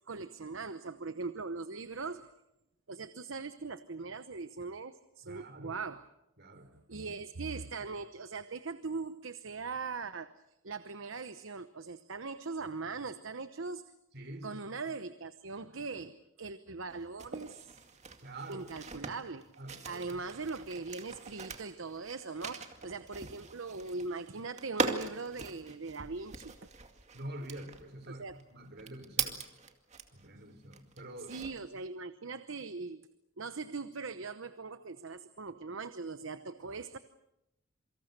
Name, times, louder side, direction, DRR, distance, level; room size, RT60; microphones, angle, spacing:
voice 1, 0.1-2.3 2.9-6.1 6.7-10.3 10.6-13.8 14.4-17.7 18.5-19.4 19.8-26.6 28.1-28.3 31.3-33.1 33.4-37.0, right 4 dB, 70° right, 11 dB, 0.9 m, -40 dB
voice 2, 5.2-5.8 6.4-6.8 14.1-14.6 18.2-18.7 19.6-20.2 27.1-29.5 30.1-31.4, right 1 dB, 55° right, 9 dB, 3.6 m, -46 dB
sound 1, 16.9-30.3 30.7-31.8, right 4 dB, 35° right, 2.2 m, -41 dB
27.5 x 25.0 x 6.7 m, 0.89 s
head